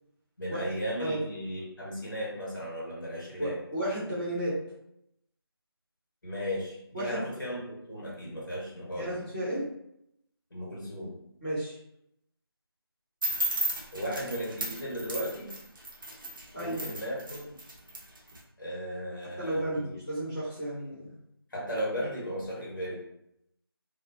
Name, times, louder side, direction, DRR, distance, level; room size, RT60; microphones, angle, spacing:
voice 1, 0.4-3.6 6.2-7.6 7.9-9.3 10.5-11.2 13.9-15.5 16.6-17.6 18.6-20.0 21.5-23.0, equal, 50° left, -5 dB, 1.1 m, -36 dB
voice 2, 3.4-4.6 6.9-7.2 8.9-9.6 11.4-11.8 16.5-16.8 19.4-21.1, right 1 dB, 10° left, -22 dB, 0.7 m, -33 dB
sound 1, 13.2-18.4, right 1 dB, 55° right, 0.6 m, -34 dB
2.5 x 2.0 x 2.5 m, 0.78 s
figure-of-eight pair, 175°, 13 cm